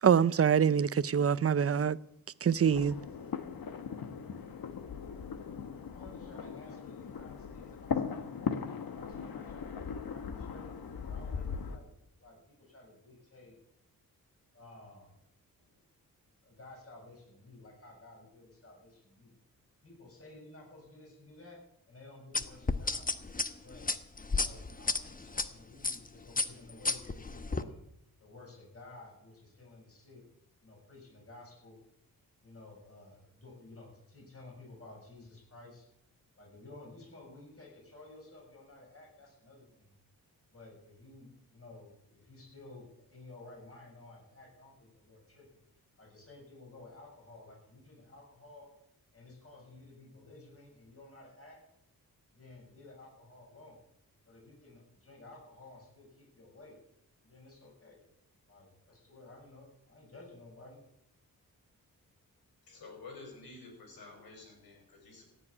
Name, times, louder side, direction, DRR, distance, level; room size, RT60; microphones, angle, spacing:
voice 1, 0.0-2.0 2.4-3.0, right 7 dB, 40° right, 0.6 m, -25 dB
sound 1, 2.7-11.8, left 6 dB, 75° left, 1.4 m, -39 dB
voice 2, 5.9-8.3 8.9-10.7 11.0-11.9 12.2-13.6 14.5-15.1 15.6-15.8 16.4-19.3 19.8-21.6 21.9-23.1 23.6-23.9 24.3-27.8 28.2-30.2 30.6-31.8 32.4-35.9 36.4-39.9 40.5-45.6 46.0-48.7 49.1-51.6 52.3-53.8 54.3-56.8 57.2-58.0 58.5-60.8, left 2 dB, 40° left, 7.1 m, -54 dB
sound 2, 22.3-25.5 25.8-26.1 26.4-27.6, left 3 dB, 25° left, 1.0 m, -32 dB
voice 3, 62.6-65.2, left 3 dB, 90° left, 5.7 m, -50 dB
16.0 x 7.5 x 9.7 m
cardioid pair, 70°, 36 cm